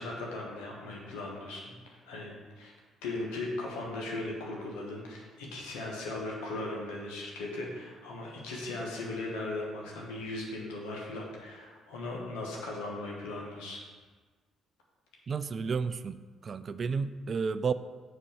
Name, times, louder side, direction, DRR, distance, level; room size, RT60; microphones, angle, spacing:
voice 1, 0.0-2.7 3.0-13.8, left 2 dB, 70° left, -1 dB, 1.2 m, -38 dB
voice 2, 15.3-17.7, right 5 dB, 45° right, 14 dB, 0.3 m, -32 dB
7.5 x 4.2 x 4.9 m, 1.4 s
figure-of-eight pair, 45°, 0 cm